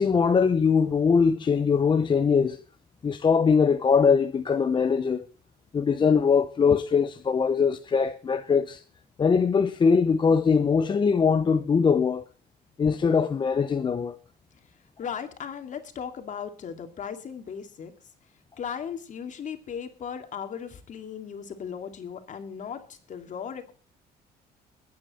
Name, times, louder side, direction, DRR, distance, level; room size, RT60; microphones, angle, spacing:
voice 1, 0.0-2.6 3.0-5.3 5.7-8.8 9.2-12.2 12.8-14.2, left 5 dB, 30° left, 0.7 m, -22 dB
voice 2, 15.0-17.9 18.6-23.7, left 7 dB, 45° left, 2.3 m, -37 dB
21.5 x 8.7 x 4.2 m
cardioid pair, 110°, 17 cm